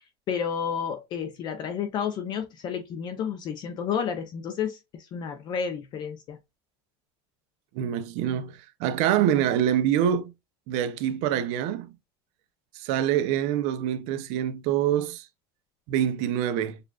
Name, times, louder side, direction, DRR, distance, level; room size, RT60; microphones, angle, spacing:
voice 1, 0.3-4.8 5.1-6.4, left 7 dB, 30° left, 0.5 m, -31 dB
voice 2, 7.7-10.3 10.7-11.9 12.7-15.3 15.9-16.8, right 10 dB, 55° right, 0.6 m, -25 dB
6.6 x 2.4 x 2.3 m
cardioid pair, 170°, 14 cm